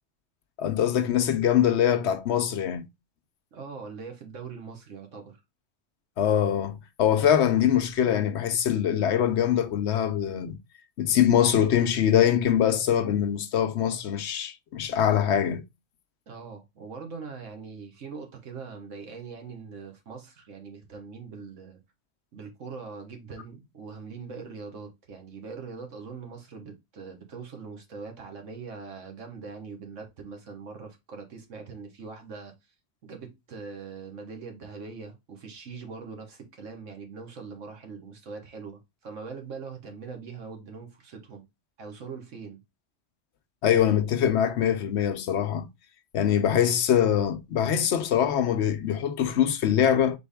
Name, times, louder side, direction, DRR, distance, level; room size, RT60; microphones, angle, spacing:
voice 1, 0.6-2.9 6.2-10.6 11.0-15.6 43.6-45.7 46.1-50.2, left 9 dB, 70° left, 0.8 m, -23 dB
voice 2, 3.5-5.4 16.3-21.8 22.3-32.5 33.0-41.4 41.8-42.6, right 5 dB, 80° right, 1.5 m, -42 dB
4.3 x 3.4 x 3.4 m
omnidirectional pair, 1.3 m